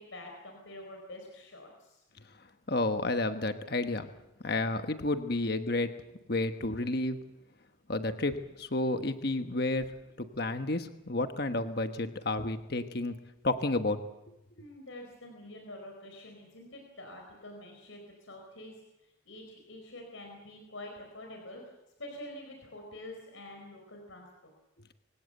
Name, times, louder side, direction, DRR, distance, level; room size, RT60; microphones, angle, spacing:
voice 1, 0.0-2.0 14.5-21.6 22.0-24.3, left 1 dB, 90° left, 2 dB, 4.7 m, -47 dB
voice 2, 2.7-4.1 4.4-5.9 6.3-7.2 7.9-9.9 10.2-13.1 13.4-14.0, left 2 dB, 50° left, 8 dB, 1.3 m, -31 dB
24.0 x 16.5 x 7.9 m, 0.96 s
head